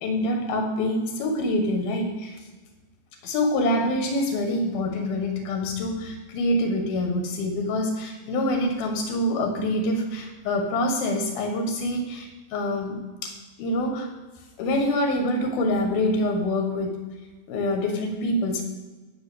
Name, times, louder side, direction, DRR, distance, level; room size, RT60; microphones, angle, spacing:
voice 1, 0.0-2.4 3.2-14.1 14.6-17.0 17.5-18.6, left 1 dB, 80° left, 4 dB, 3.3 m, -26 dB
11.5 x 6.1 x 8.5 m, 1.3 s
omnidirectional pair, 4.2 m